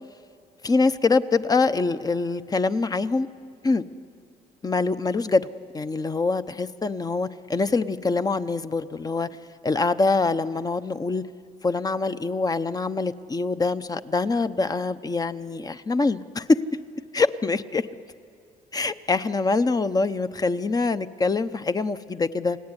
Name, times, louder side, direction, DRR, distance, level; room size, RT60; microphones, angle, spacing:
voice 1, 0.6-3.3 3.6-3.8 4.6-5.5 5.7-9.3 9.6-11.2 11.6-16.6 17.1-17.9 18.7-22.6, left 3 dB, 20° left, 11 dB, 0.9 m, -24 dB
29.5 x 18.0 x 9.8 m, 2.3 s
cardioid pair, 110°, 17 cm